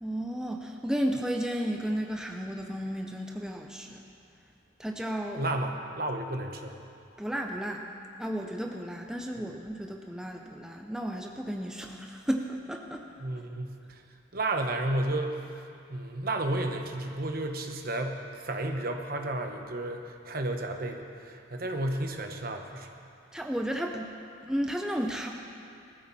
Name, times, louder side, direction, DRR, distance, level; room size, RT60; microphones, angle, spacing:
voice 1, 0.0-4.0 4.8-5.4 7.2-7.8 8.2-13.0 23.3-24.1 24.4-25.3, equal, 5° right, 2 dB, 0.6 m, -33 dB
voice 2, 5.3-6.8 9.4-9.5 13.2-14.0 14.3-15.4 15.9-22.9, right 1 dB, 50° right, 4 dB, 1.2 m, -32 dB
20.0 x 14.0 x 4.2 m, 2.5 s
head